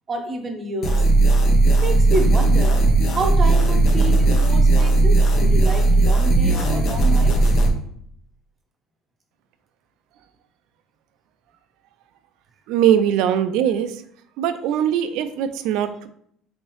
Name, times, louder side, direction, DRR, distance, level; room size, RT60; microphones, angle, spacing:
voice 1, 0.1-1.0 1.7-2.9 3.1-7.5, right 2 dB, 30° right, 4 dB, 0.6 m, -29 dB
sound 1, 0.8-7.7, right 2 dB, 55° left, 0.8 m, -16 dB
voice 2, 12.7-14.0 14.4-16.1, right 9 dB, 75° right, 10 dB, 0.4 m, -21 dB
3.5 x 3.0 x 3.1 m, 0.65 s
cardioid pair, 125°, 0 cm